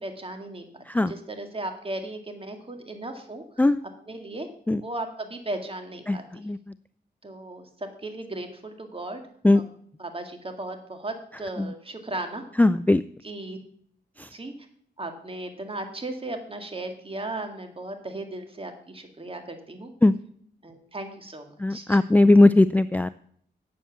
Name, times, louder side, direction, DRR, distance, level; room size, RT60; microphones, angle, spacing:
voice 1, 0.0-3.4 4.1-4.5 4.8-6.5 7.2-9.7 10.0-12.5 13.2-13.6 14.3-14.5 15.0-19.9 20.6-22.0, right 2 dB, 30° right, 5 dB, 2.1 m, -36 dB
voice 2, 12.6-13.0 20.0-20.1 21.6-23.1, left 2 dB, 10° left, 14 dB, 0.3 m, -18 dB
8.4 x 7.5 x 7.1 m, 0.62 s
cardioid pair, 60°, 19 cm